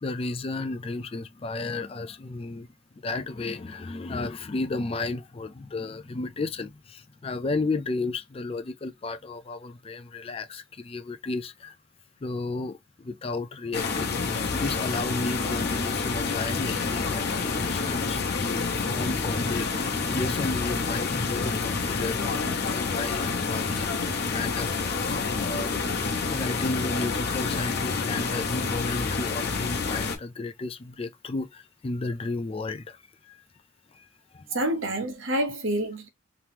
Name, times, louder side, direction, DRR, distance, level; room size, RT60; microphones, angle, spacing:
voice 1, 0.0-2.7 3.0-11.8 12.2-14.2 14.5-23.9 24.3-25.0 25.4-25.7 26.3-33.0 33.9-34.1 34.3-34.7, left 3 dB, 30° left, 0.3 m, -33 dB
sound 1, 13.7-30.2, left 4 dB, 50° left, 0.8 m, -28 dB
voice 2, 34.5-36.1, right 1 dB, 70° right, 1.0 m, -27 dB
3.4 x 3.0 x 2.8 m
head